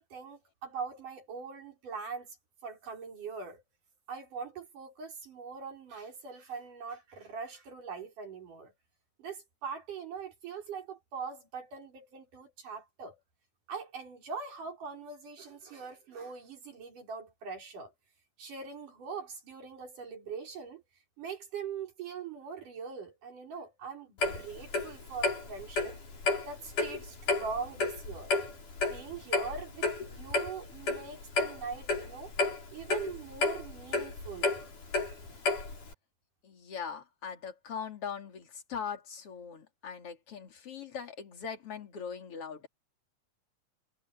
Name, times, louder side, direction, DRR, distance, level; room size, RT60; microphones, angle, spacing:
voice 1, 0.0-2.4 2.6-3.6 4.1-8.7 9.2-13.2 13.7-17.9 18.4-20.8 21.2-26.0 26.5-28.4 28.8-32.4 32.7-34.7, right 5 dB, 90° right, 6.9 m, -42 dB
Clock, 24.2-35.9, left 3 dB, 80° left, 8.3 m, -32 dB
voice 2, 36.4-42.7, left 7 dB, 50° left, 3.7 m, -41 dB
omnidirectional pair, 3.6 m